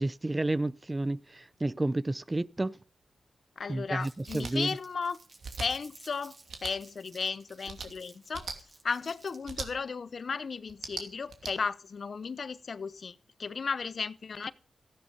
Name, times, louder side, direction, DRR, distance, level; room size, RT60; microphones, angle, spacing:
voice 1, 0.0-2.8 3.7-4.8, right 2 dB, 20° right, 0.6 m, -31 dB
voice 2, 3.6-5.2 5.6-6.4 6.6-8.5 8.8-14.5, left 5 dB, 55° left, 0.8 m, -35 dB
Crumpling crinkling, 4.0-9.5, right 3 dB, 45° right, 5.1 m, -55 dB
sound 1, 4.3-4.5 5.4-5.7 6.5-6.7 7.6-7.9 8.3-8.6 9.4-9.7 10.7-11.5, right 5 dB, 75° right, 2.6 m, -39 dB
14.5 x 11.0 x 5.4 m
cardioid pair, 90°, 0 cm